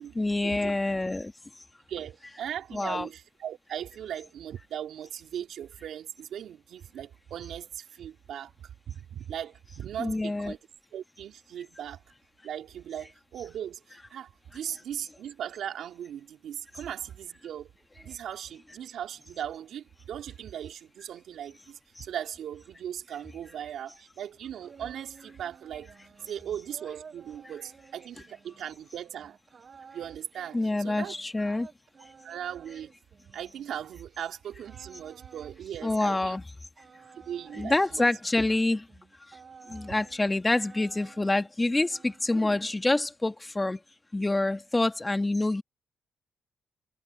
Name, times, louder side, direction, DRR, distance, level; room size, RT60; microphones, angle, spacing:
voice 1, 0.1-1.3 2.7-3.1 10.0-10.5 22.0-22.1 30.5-31.7 35.8-36.4 37.6-38.9 39.2-39.4 39.7-43.8 44.1-45.6, left 2 dB, 15° left, 1.5 m, -27 dB
voice 2, 1.9-10.6 10.9-12.0 12.4-17.7 18.0-29.4 29.9-31.1 32.2-32.9 33.3-36.4 37.2-38.1 39.7-39.8, right 10 dB, 70° right, 2.9 m, -39 dB
sound 1, 24.3-34.2 34.6-36.5 36.8-40.3 40.5-41.5 41.8-42.8, right 6 dB, 45° right, 5.3 m, -53 dB
cardioid pair, 90°, 0 cm